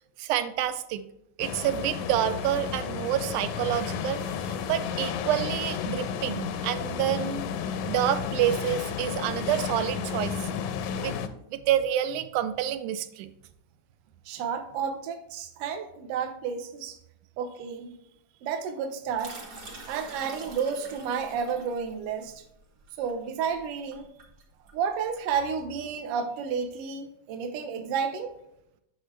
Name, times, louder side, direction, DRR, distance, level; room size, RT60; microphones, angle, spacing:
voice 1, 0.2-1.0 1.4-7.5 7.9-10.5 11.0-11.2 11.5-13.3, right 11 dB, 85° right, 11 dB, 2.0 m, -28 dB
sound 1, 1.4-11.3, left 7 dB, 85° left, 2.1 m, -32 dB
voice 2, 14.2-17.0 17.4-17.9 18.4-19.4 19.9-22.4 23.0-24.1 24.7-28.3, right 6 dB, 65° right, 6 dB, 1.5 m, -31 dB
sound 2, 19.2-25.6, right 2 dB, 40° right, 1.3 m, -46 dB
8.5 x 6.2 x 3.2 m, 0.80 s
omnidirectional pair, 3.5 m